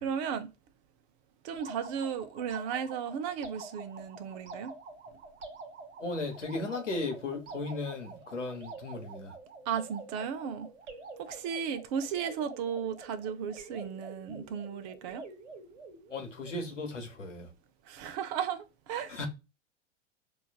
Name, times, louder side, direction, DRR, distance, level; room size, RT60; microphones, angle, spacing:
voice 1, 0.0-0.5 1.4-4.7 9.7-10.7 11.2-15.2 17.9-19.2, right 7 dB, 35° right, 0.5 m, -35 dB
sound 1, 1.5-16.7, right 3 dB, 80° right, 1.0 m, -47 dB
voice 2, 6.0-9.3 16.1-17.5 19.1-19.3, left 3 dB, 85° left, 1.0 m, -36 dB
4.8 x 2.4 x 2.3 m
figure-of-eight pair, 95°, 36 cm